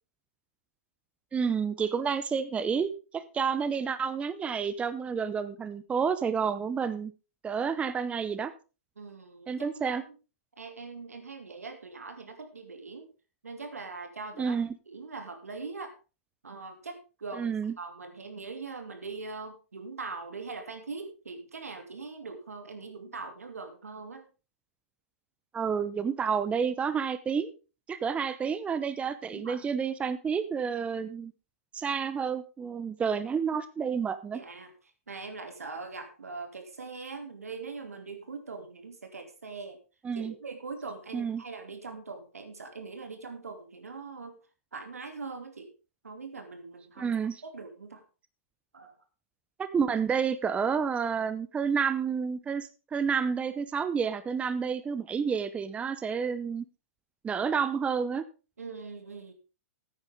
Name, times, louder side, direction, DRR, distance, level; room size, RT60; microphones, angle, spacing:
voice 1, 1.3-7.1 7.4-8.5 9.5-10.0 14.4-14.8 17.4-17.7 25.5-27.5 27.9-31.3 31.7-34.4 40.0-40.3 41.1-41.4 47.0-47.4 49.6-56.6 57.2-58.2, right 6 dB, 15° right, 13 dB, 0.7 m, -30 dB
voice 2, 9.0-10.1 10.6-13.1 13.4-14.6 14.9-15.9 16.4-24.3 29.3-29.6 34.3-34.7 35.1-39.8 40.1-44.4 44.7-45.7 46.0-47.1 47.4-48.0 48.7-48.9 58.6-59.3, right 4 dB, 90° right, 6 dB, 2.6 m, -42 dB
14.0 x 9.4 x 3.6 m, 0.31 s
hypercardioid pair, 115°, 8 cm